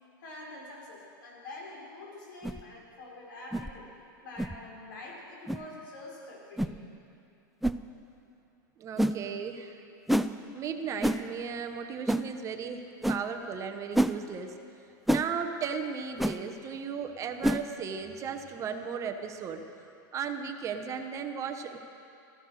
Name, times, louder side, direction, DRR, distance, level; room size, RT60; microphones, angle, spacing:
voice 1, 0.2-3.9 4.2-6.8, left 2 dB, 75° left, -3 dB, 5.0 m, -45 dB
sound 1, 2.4-2.6 3.5-3.7 4.4-4.6 5.5-5.6 6.6-6.8 7.6-7.8 9.0-9.2 10.1-10.3 11.0-11.2 12.1-12.3 13.0-13.2 13.9-14.2 15.1-15.3 16.2-16.4 17.4-17.6, right 1 dB, ahead, 0.3 m, -27 dB
voice 2, 8.8-9.8 10.5-14.6 15.1-19.6 20.1-21.8, right 6 dB, 30° right, 6 dB, 0.9 m, -36 dB
14.5 x 14.0 x 6.4 m, 2.6 s
supercardioid pair, 135°, 11 cm